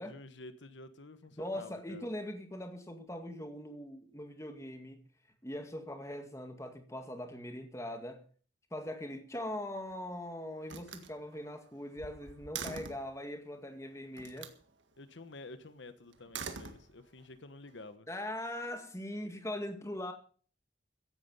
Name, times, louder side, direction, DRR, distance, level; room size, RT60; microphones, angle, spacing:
voice 1, 0.0-2.1 15.0-18.1, left 2 dB, 75° left, 1.2 m, -50 dB
voice 2, 1.4-5.0 5.4-8.2 8.7-14.5 18.1-20.1, left 1 dB, 15° left, 2.0 m, -41 dB
Slam, 9.6-10.2 10.6-13.1 14.2-14.6 16.1-17.3, right 6 dB, 75° right, 1.8 m, -45 dB
15.5 x 11.0 x 5.6 m
head